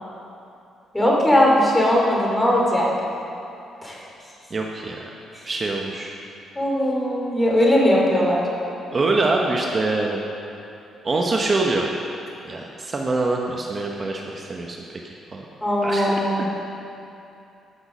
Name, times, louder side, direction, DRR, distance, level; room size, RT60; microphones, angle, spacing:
voice 1, 0.9-2.9 3.8-4.0 6.5-8.4 15.6-16.5, left 1 dB, 10° left, -3 dB, 2.9 m, -19 dB
voice 2, 4.5-5.1 5.4-6.1 8.9-10.2 11.0-11.9 12.4-15.0 15.3-15.5 15.8-16.5, right 3 dB, 35° right, 0 dB, 0.9 m, -24 dB
14.0 x 6.0 x 6.2 m, 2.7 s
cardioid pair, 90°, 0 cm